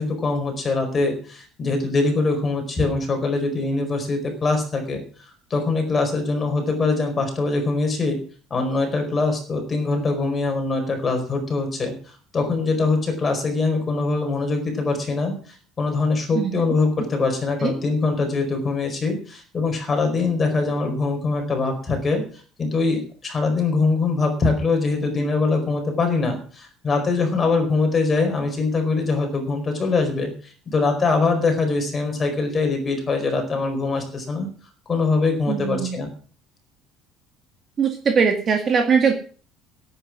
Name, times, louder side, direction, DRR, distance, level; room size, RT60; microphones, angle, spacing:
voice 1, 0.0-5.0 5.5-8.2 8.5-11.9 12.3-15.3 15.8-22.2 22.6-34.5 34.9-36.1, left 3 dB, 20° left, 4 dB, 4.7 m, -23 dB
voice 2, 35.5-36.0 37.8-39.2, right 6 dB, 25° right, 4 dB, 2.0 m, -20 dB
17.0 x 9.2 x 6.2 m, 0.40 s
cardioid pair, 180°, 0 cm